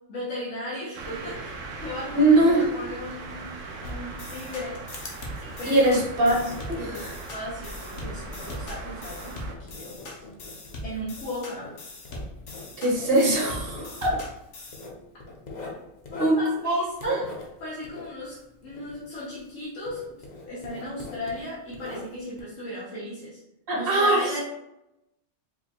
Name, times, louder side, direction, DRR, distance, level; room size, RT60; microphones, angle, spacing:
voice 1, 0.1-1.5 1.8-4.8 5.6-6.0 6.7-10.0 10.8-11.7 13.8-13.9 16.1-17.3 17.6-23.4 23.7-24.4, left 1 dB, 90° left, -7 dB, 1.3 m, -36 dB
sound 1, 1.0-9.5, right 3 dB, 85° right, 1.0 m, -40 dB
voice 2, 2.1-2.6 5.4-7.1 12.8-14.1 16.2-16.4 16.6-17.2 23.7-24.2, right 2 dB, 50° right, -2 dB, 1.1 m, -22 dB
sound 2, 3.8-14.9, left 1 dB, 70° left, 1.1 m, -40 dB
Writing, 4.2-19.6 19.8-22.4, left 2 dB, 45° left, 0.7 m, -43 dB
4.9 x 2.2 x 2.8 m, 0.86 s
omnidirectional pair, 1.3 m